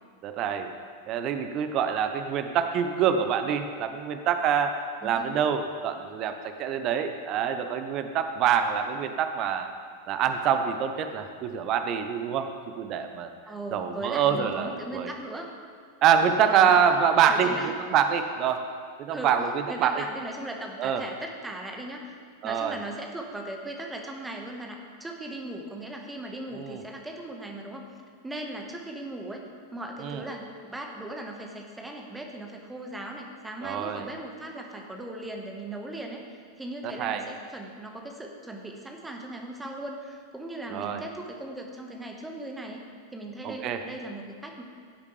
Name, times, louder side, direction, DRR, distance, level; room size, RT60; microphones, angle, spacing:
voice 1, 0.2-0.7 1.1-9.7 10.1-12.5 12.8-13.3 13.7-15.1 16.0-18.6 19.0-20.0 20.8-21.0 22.4-22.8 26.5-26.8 30.0-30.2 33.6-34.1 36.8-37.2 40.7-41.0 43.4-43.8, right 8 dB, 35° right, 8 dB, 0.8 m, -25 dB
voice 2, 5.0-5.4 13.5-15.5 16.5-16.7 17.3-17.7 19.1-19.3 19.7-22.1 22.4-27.9 28.2-29.4 29.7-36.2 36.6-42.8 43.1-44.6, right 1 dB, 10° right, 1 dB, 1.4 m, -38 dB
16.5 x 8.4 x 3.4 m, 2.1 s
figure-of-eight pair, 90°, 0 cm